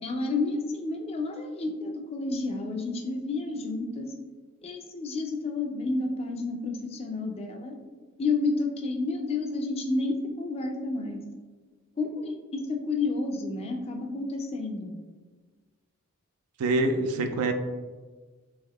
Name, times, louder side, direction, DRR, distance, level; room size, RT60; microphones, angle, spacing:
voice 1, 0.0-4.1 4.6-7.7 8.2-11.2 12.0-14.9, left 3 dB, 25° left, 3 dB, 0.3 m, -30 dB
voice 2, 16.6-17.5, right 2 dB, 85° right, 7 dB, 0.4 m, -25 dB
3.4 x 3.4 x 2.2 m, 1.4 s
head